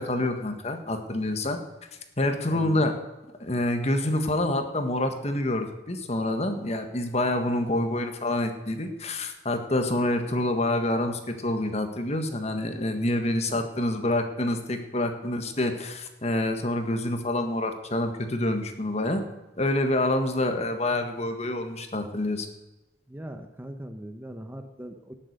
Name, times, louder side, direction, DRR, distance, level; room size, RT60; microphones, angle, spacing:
voice 1, 0.0-1.6 2.2-3.0 3.4-19.2 19.6-22.5, left 1 dB, 40° left, 6 dB, 1.5 m, -27 dB
voice 2, 2.5-2.8 12.7-12.8 13.5-13.6 23.1-25.1, right 1 dB, 10° right, 6 dB, 0.9 m, -40 dB
18.0 x 7.5 x 6.7 m, 1.1 s
head